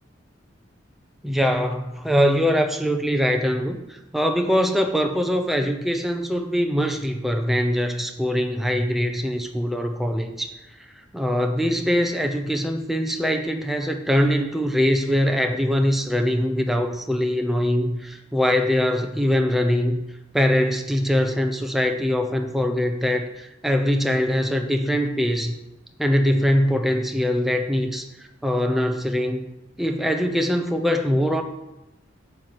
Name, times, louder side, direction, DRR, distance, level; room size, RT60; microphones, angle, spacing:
voice 1, 1.2-3.8 4.1-10.5 11.1-20.0 20.3-25.5 26.0-28.0 28.4-29.4 29.8-31.4, equal, ahead, 4 dB, 0.8 m, -22 dB
9.3 x 4.7 x 7.6 m, 0.95 s
head